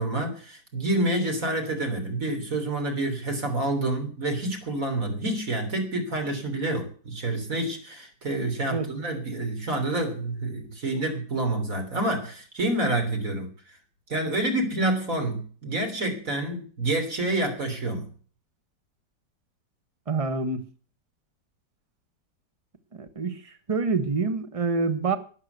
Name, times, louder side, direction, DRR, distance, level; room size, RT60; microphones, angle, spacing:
voice 1, 0.0-13.5 14.1-18.1, right 2 dB, 50° right, 3.7 m, -28 dB
voice 2, 20.1-20.6 22.9-23.4 23.7-25.2, right 4 dB, 20° right, 1.2 m, -26 dB
12.0 x 9.8 x 8.0 m
omnidirectional pair, 1.9 m